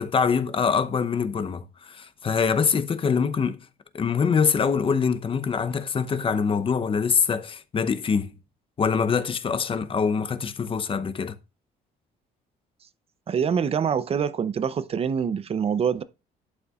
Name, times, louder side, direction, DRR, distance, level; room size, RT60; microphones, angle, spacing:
voice 1, 0.0-3.7 3.9-8.3 8.8-11.4, left 6 dB, 30° left, 0.7 m, -24 dB
voice 2, 13.3-16.0, right 7 dB, 35° right, 0.6 m, -25 dB
11.5 x 8.3 x 2.4 m
cardioid pair, 110°, 17 cm